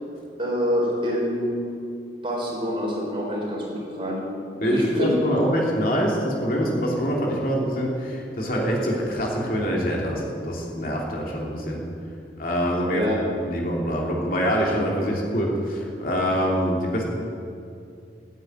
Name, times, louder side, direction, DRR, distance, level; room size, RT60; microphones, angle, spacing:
voice 1, 0.4-1.6 2.2-4.2 4.6-5.1 12.9-13.2, equal, 30° right, -3 dB, 4.3 m, -26 dB
voice 2, 4.6-11.8 12.4-13.0 13.4-17.0, equal, 50° left, -2 dB, 3.0 m, -25 dB
16.0 x 8.9 x 9.4 m, 2.4 s
head